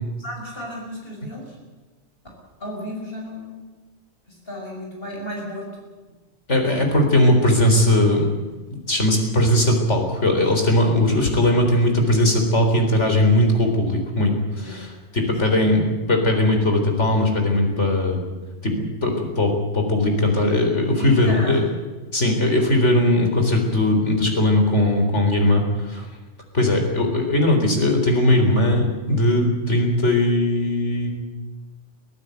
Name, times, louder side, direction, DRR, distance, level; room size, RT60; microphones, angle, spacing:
voice 1, 0.2-1.6 2.6-3.7 4.3-5.7 13.0-13.2 14.6-14.8 15.2-15.7 20.9-21.8, left 1 dB, 55° left, -2 dB, 6.6 m, -34 dB
voice 2, 6.5-8.3 8.7-14.9 15.1-18.2 18.6-21.6 22.1-26.0 26.5-31.1, left 1 dB, 90° left, 3 dB, 4.3 m, -19 dB
24.5 x 15.0 x 8.1 m, 1.3 s
omnidirectional pair, 1.2 m